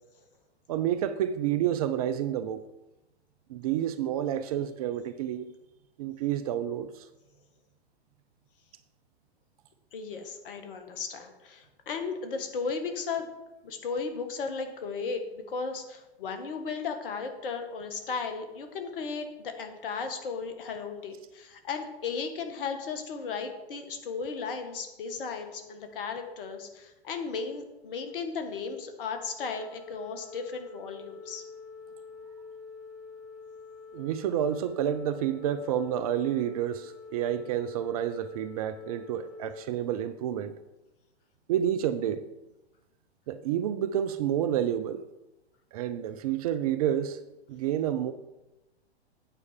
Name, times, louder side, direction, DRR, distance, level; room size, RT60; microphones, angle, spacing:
voice 1, 0.7-2.6 3.5-5.5 6.0-7.1 33.9-40.5 41.5-42.3 43.3-45.0 45.7-47.2 47.5-48.1, right 10 dB, 35° right, 0.5 m, -29 dB
voice 2, 9.9-13.3 13.6-31.4, left 5 dB, 55° left, 1.5 m, -35 dB
Organ, 29.4-40.4, left 4 dB, 5° right, 1.7 m, -47 dB
8.9 x 4.7 x 7.2 m
figure-of-eight pair, 110°, 33 cm